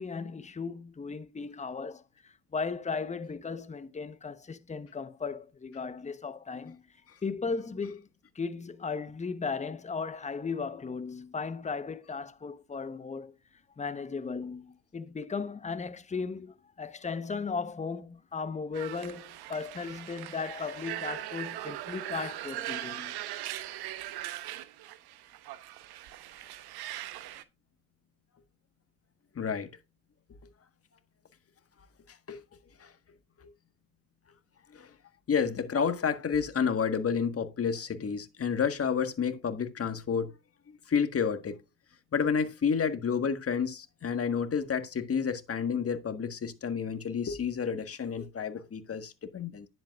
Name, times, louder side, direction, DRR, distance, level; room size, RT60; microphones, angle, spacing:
voice 1, 0.0-6.8 7.2-8.1 8.3-13.4 13.8-23.2, left 5 dB, 15° left, 1.0 m, -36 dB
sound 1, 18.7-27.4, right 14 dB, 55° right, 1.1 m, -40 dB
voice 2, 29.3-29.7 32.1-32.4 32.8-32.9 34.7-34.9 35.3-40.3 40.7-41.6 42.1-49.7, left 6 dB, 30° left, 1.5 m, -30 dB
10.5 x 8.0 x 2.4 m
hypercardioid pair, 75°, 45 cm